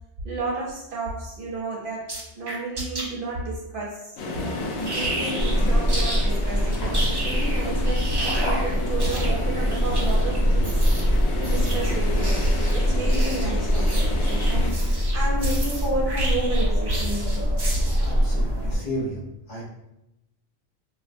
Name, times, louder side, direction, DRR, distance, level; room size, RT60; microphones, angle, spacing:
voice 1, 0.2-10.8 11.3-17.6, right 2 dB, 55° right, -3 dB, 0.8 m, -31 dB
sound 1, 2.1-3.0 4.8-5.5 5.9-6.3 6.7-18.2, right 2 dB, 40° right, 0.3 m, -33 dB
sound 2, 4.2-14.7, left 2 dB, 80° left, 0.9 m, -32 dB
sound 3, 5.4-18.8, equal, 30° left, 0.5 m, -23 dB
voice 2, 18.0-19.2 19.5-19.6, equal, 50° left, -5 dB, 0.9 m, -32 dB
3.5 x 2.3 x 2.5 m, 0.89 s
omnidirectional pair, 1.1 m